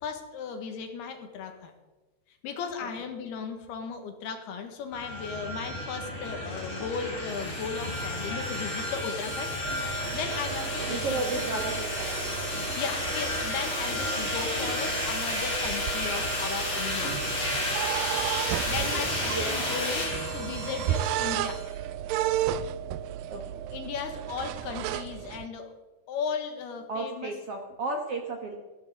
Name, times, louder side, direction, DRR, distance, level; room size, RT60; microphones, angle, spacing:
voice 1, 0.0-1.7 2.3-9.5 9.8-11.6 12.8-17.1 18.7-21.6 23.7-25.7 26.1-27.3, left 6 dB, 80° left, 5 dB, 3.6 m, -36 dB
sound 1, 4.9-21.7, left 1 dB, 45° left, 5.8 m, -32 dB
sound 2, 9.6-25.5, right 12 dB, 85° right, 1.9 m, -34 dB
voice 2, 10.8-12.3 18.9-19.5 23.3-23.6 26.9-28.6, right 3 dB, 60° right, 2 dB, 1.6 m, -34 dB
18.0 x 14.5 x 3.9 m, 1.2 s
omnidirectional pair, 4.6 m